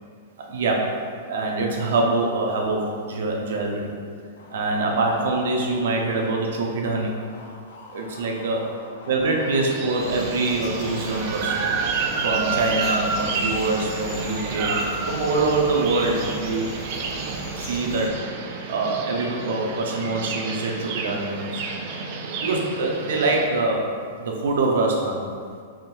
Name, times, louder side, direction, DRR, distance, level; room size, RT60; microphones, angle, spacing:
voice 1, 0.5-0.9 1.3-3.9 4.5-7.2 7.9-8.6 9.1-11.7 12.2-16.8 17.6-18.2 18.7-21.6 21.9-22.0 22.4-23.8 24.2-25.2, right 3 dB, 70° right, 0 dB, 0.7 m, -24 dB
sound 1, 4.4-12.7, left 2 dB, 65° left, 0.5 m, -44 dB
sound 2, 9.5-23.5, right 4 dB, 35° right, 0.3 m, -30 dB
sound 3, 9.9-18.1, left 1 dB, 15° left, 0.6 m, -39 dB
3.6 x 2.5 x 4.4 m, 2.1 s
supercardioid pair, 175°, 0 cm